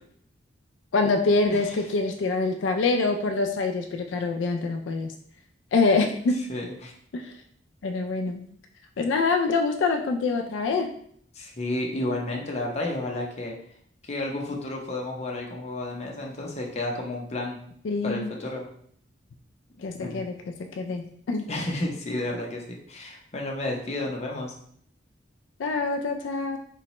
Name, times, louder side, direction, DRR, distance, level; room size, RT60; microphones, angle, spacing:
voice 1, 0.9-5.1 5.7-6.4 7.1-7.4 7.8-8.4 9.0-10.9 17.8-18.3 19.8-20.3 20.7-21.5 25.6-26.6, left 3 dB, 85° left, 3 dB, 0.4 m, -25 dB
voice 2, 6.5-6.9 11.3-13.6 14.0-17.6 18.0-18.7 20.0-20.2 21.5-24.5, left 2 dB, 35° left, -1 dB, 0.6 m, -31 dB
3.9 x 2.2 x 2.9 m, 0.63 s
head